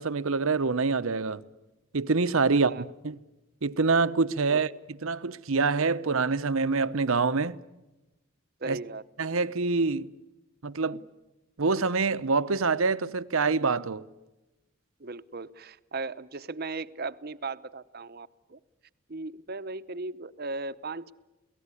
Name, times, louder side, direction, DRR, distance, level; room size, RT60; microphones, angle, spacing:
voice 1, 0.0-1.4 1.9-3.2 3.6-4.7 5.0-7.6 8.7-8.8 9.2-10.1 10.6-11.0 11.6-14.0, right 4 dB, 75° right, 0.9 m, -26 dB
voice 2, 2.5-2.8 4.5-4.6 8.6-9.0 15.0-18.6 19.1-21.1, right 3 dB, 45° right, 0.8 m, -37 dB
29.0 x 18.0 x 9.8 m
head